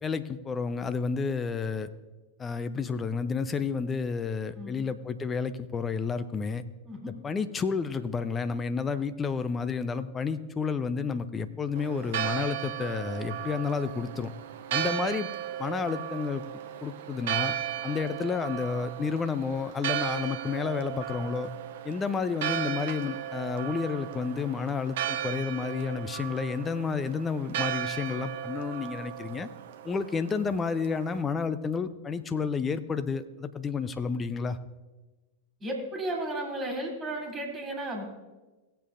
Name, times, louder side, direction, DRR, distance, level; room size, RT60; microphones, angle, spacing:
voice 1, 0.0-1.9 2.4-6.6 7.0-14.3 14.7-15.3 15.6-16.4 16.8-17.5 17.8-21.5 21.8-29.5 29.8-34.6, left 5 dB, 20° left, 11 dB, 0.6 m, -31 dB
Church bell, 11.7-31.2, right 11 dB, 60° right, 0.7 m, -35 dB
voice 2, 35.6-38.0, right 1 dB, 20° right, 1 dB, 3.0 m, -34 dB
18.0 x 7.8 x 2.6 m, 1.2 s
figure-of-eight pair, 90°, 0 cm